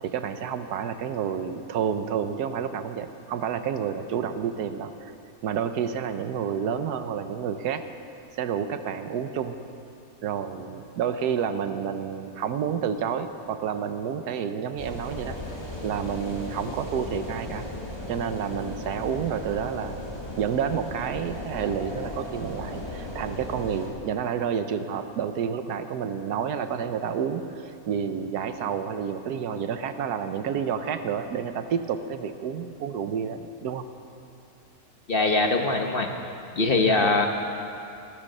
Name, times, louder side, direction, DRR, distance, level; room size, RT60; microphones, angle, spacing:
voice 1, 0.0-5.1 5.4-7.9 8.4-9.6 10.2-15.4 15.8-17.7 18.1-20.1 20.4-33.8, right 7 dB, 80° right, 9 dB, 1.3 m, -29 dB
sound 1, 14.8-23.9, left 1 dB, 15° left, 2.8 m, -36 dB
voice 2, 35.1-36.1 36.6-37.3, left 3 dB, 40° left, 3 dB, 1.1 m, -22 dB
16.0 x 13.5 x 6.6 m, 2.6 s
omnidirectional pair, 1.7 m